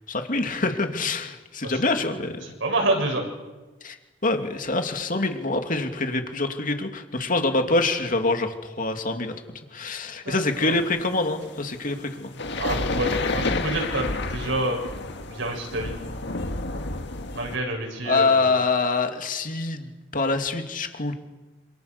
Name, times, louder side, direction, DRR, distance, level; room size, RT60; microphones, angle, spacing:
voice 1, 0.1-2.5 3.8-4.0 4.2-9.3 9.7-12.4 18.0-21.1, left 3 dB, 45° left, 5 dB, 2.7 m, -25 dB
voice 2, 1.6-3.2 10.2-10.8 12.6-14.8 15.2-15.9 17.3-18.5, right 1 dB, 75° right, 1 dB, 7.8 m, -28 dB
sound 1, 10.4-17.6, left 2 dB, 65° left, 1.8 m, -30 dB
27.5 x 27.0 x 6.8 m, 1.2 s
head